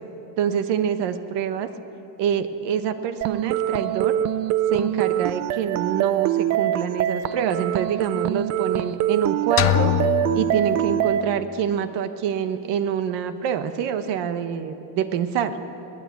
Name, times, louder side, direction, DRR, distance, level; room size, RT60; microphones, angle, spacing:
voice 1, 0.4-1.7 2.2-4.2 4.7-9.9 10.3-15.6, right 8 dB, 55° right, 9 dB, 1.2 m, -26 dB
sound 1, 3.2-11.2, right 12 dB, 35° right, 0.5 m, -24 dB
sound 2, 9.6-11.5, left 12 dB, 30° left, 0.4 m, -24 dB
21.5 x 18.0 x 8.4 m, 2.9 s
cardioid pair, 160°, 49 cm